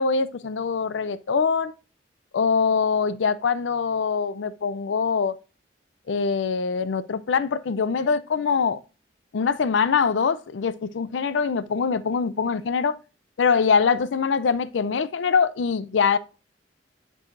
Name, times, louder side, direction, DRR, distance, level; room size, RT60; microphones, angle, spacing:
voice 1, 0.0-1.7 2.3-5.3 6.1-8.8 9.3-12.9 13.4-16.2, left 5 dB, 90° left, 0.5 m, -23 dB
9.6 x 4.8 x 2.5 m
head